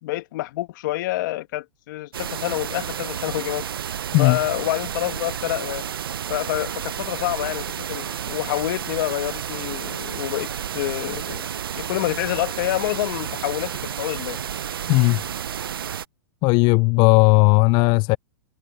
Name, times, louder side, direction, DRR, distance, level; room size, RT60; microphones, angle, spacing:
voice 1, 0.0-3.6 4.2-5.9 6.3-10.5 10.7-11.5 11.8-14.5, left 17 dB, 60° left, 1.9 m, -27 dB
sound 1, 2.1-16.0, right 9 dB, 85° right, 0.5 m, -31 dB
voice 2, 14.9-15.2 16.4-18.2, left 28 dB, 40° left, 0.4 m, -16 dB
hypercardioid pair, 110°, 12 cm